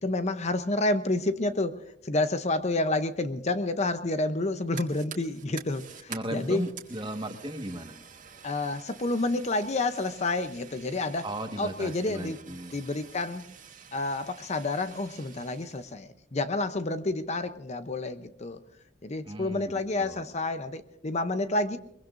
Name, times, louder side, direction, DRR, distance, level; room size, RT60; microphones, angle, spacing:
voice 1, 0.0-6.7 8.4-11.3 11.6-13.4 13.9-18.6 19.0-21.8, left 2 dB, 35° left, 10 dB, 0.7 m, -29 dB
Fire, 4.4-15.9, right 7 dB, 40° right, 1.9 m, -48 dB
voice 2, 6.1-8.0 11.2-12.8 19.2-19.7 20.0-20.3, right 1 dB, 25° right, 5 dB, 1.6 m, -36 dB
23.0 x 22.5 x 2.6 m, 0.81 s
head